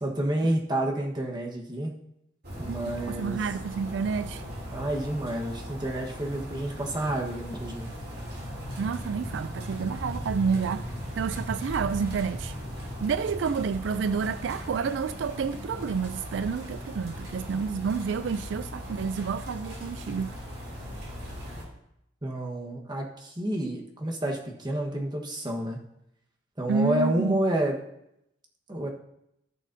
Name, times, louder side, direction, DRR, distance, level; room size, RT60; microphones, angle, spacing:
voice 1, 0.0-1.9 2.6-3.4 4.7-7.9 22.2-25.8 26.6-27.8 28.7-28.9, right 1 dB, 25° right, 1.3 m, -29 dB
sound 1, 2.4-21.6, equal, 65° right, 2.9 m, -38 dB
voice 2, 2.7-4.4 8.8-10.9 11.2-12.5 13.0-20.3 26.7-27.4, right 6 dB, 80° right, 0.3 m, -29 dB
15.0 x 6.3 x 2.7 m
head